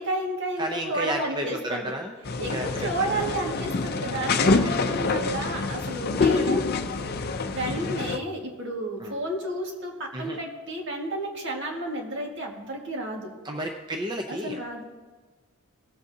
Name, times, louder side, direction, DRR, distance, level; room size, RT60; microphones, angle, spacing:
voice 1, 0.0-1.9 2.4-6.6 7.5-13.3 14.3-14.8, right 1 dB, 55° right, 0 dB, 1.9 m, -31 dB
voice 2, 0.6-3.3 5.0-5.4 6.3-6.6 7.7-7.9 9.0-9.2 10.1-10.4 13.4-14.6, right 1 dB, 20° right, 2 dB, 0.6 m, -33 dB
sound 1, 2.2-8.2, left 3 dB, 45° left, 0.6 m, -26 dB
19.5 x 7.9 x 2.8 m, 1.4 s
head